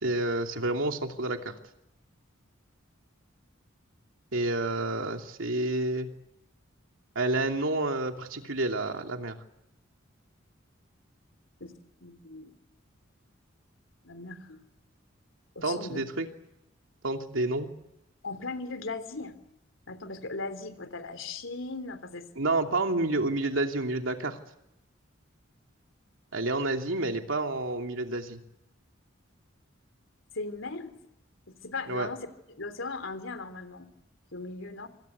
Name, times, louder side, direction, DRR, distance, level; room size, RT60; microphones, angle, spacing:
voice 1, 0.0-1.5 4.3-6.1 7.1-9.4 15.6-16.3 17.0-17.7 22.4-24.4 26.3-28.4 31.9-32.1, right 2 dB, 85° right, 4 dB, 2.8 m, -29 dB
voice 2, 12.0-12.5 14.0-14.7 15.5-16.1 18.2-19.3 19.9-22.2 30.3-30.9 31.5-32.2 32.5-33.9 34.3-34.9, left 3 dB, 80° left, 10 dB, 3.4 m, -38 dB
26.5 x 25.5 x 8.2 m, 0.87 s
head